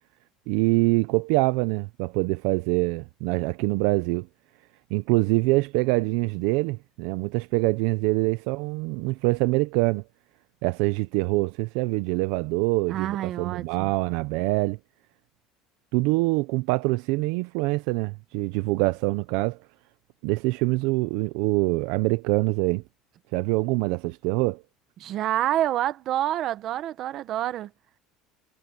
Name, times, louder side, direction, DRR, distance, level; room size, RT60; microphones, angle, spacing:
voice 1, 0.5-4.3 4.9-10.0 10.6-14.8 15.9-19.6 20.2-22.8 23.3-24.6, right 23 dB, 75° right, 0.5 m, -25 dB
voice 2, 12.9-13.9 25.0-27.7, right 12 dB, 45° right, 1.2 m, -27 dB
cardioid pair, 160°, 0 cm